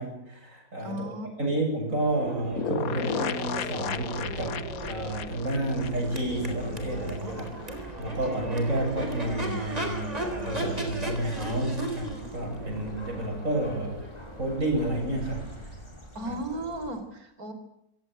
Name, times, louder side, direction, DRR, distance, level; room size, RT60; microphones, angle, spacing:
voice 1, 0.0-1.1 1.4-14.0 14.4-15.5 16.2-16.4, right 1 dB, 60° right, 2 dB, 8.3 m, -30 dB
voice 2, 0.8-1.5 16.1-17.5, right 1 dB, 75° right, 9 dB, 4.4 m, -35 dB
Crowd / Race car auto racing / Accelerating revving vroom, 1.9-15.7, right 1 dB, 25° right, 4.2 m, -37 dB
sound 1, 2.6-7.2 7.4-7.5 7.8-7.9, left 9 dB, 70° left, 1.4 m, -35 dB
sound 2, 5.7-17.0, right 1 dB, 20° left, 5.3 m, -44 dB
26.5 x 17.0 x 7.8 m, 0.84 s
omnidirectional pair, 1.6 m